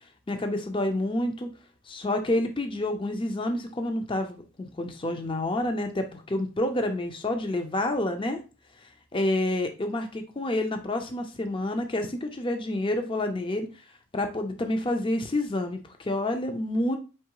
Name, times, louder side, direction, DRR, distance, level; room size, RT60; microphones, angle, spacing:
voice 1, 0.3-1.5 1.9-8.4 9.1-13.7 14.1-17.0, left 1 dB, 25° left, 5 dB, 0.5 m, -28 dB
4.6 x 3.0 x 3.0 m, 0.33 s
head